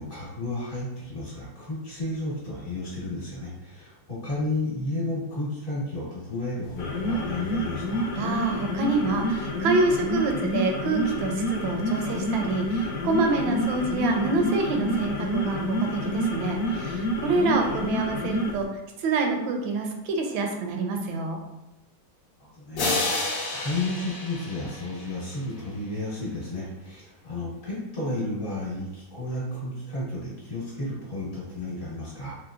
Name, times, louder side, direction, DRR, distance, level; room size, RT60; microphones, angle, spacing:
voice 1, 0.0-8.1 22.4-32.4, left 2 dB, 45° left, -7 dB, 1.3 m, -32 dB
sound 1, 6.7-18.6, equal, 80° left, 0.7 m, -28 dB
voice 2, 8.1-18.7 19.0-21.4, right 3 dB, 80° right, 3 dB, 1.3 m, -27 dB
sound 2, 22.8-25.4, left 2 dB, 60° left, 0.9 m, -30 dB
3.7 x 3.0 x 2.4 m, 0.92 s
omnidirectional pair, 2.1 m